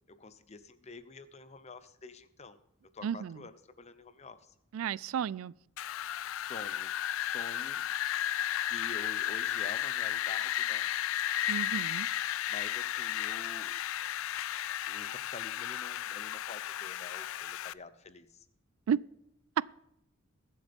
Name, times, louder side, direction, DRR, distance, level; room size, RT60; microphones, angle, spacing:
voice 1, 0.1-4.5 6.3-8.3 8.6-10.9 12.5-13.8 14.9-18.4, left 3 dB, 35° left, 0.8 m, -48 dB
voice 2, 3.0-3.4 4.7-5.5 11.5-12.1 18.9-19.0, right 8 dB, 90° right, 0.3 m, -32 dB
Wind, 5.8-17.7, left 12 dB, 75° left, 0.3 m, -34 dB
21.5 x 7.9 x 3.6 m
head